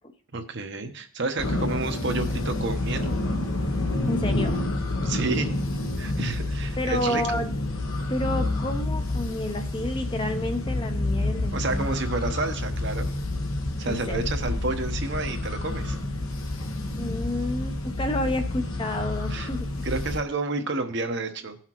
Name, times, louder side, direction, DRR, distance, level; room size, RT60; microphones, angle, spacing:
voice 1, 0.3-3.1 5.0-5.5 6.0-7.4 11.5-13.1 13.8-16.0 19.3-19.5 19.8-21.6, right 3 dB, 50° right, 6 dB, 1.0 m, -30 dB
sound 1, 1.4-20.2, left 2 dB, 70° left, 1.1 m, -29 dB
voice 2, 4.0-4.6 5.2-5.5 6.8-7.6 8.1-11.9 13.9-14.2 17.0-19.8, left 1 dB, 20° left, 6 dB, 0.7 m, -30 dB
16.5 x 5.8 x 3.0 m, 0.42 s
head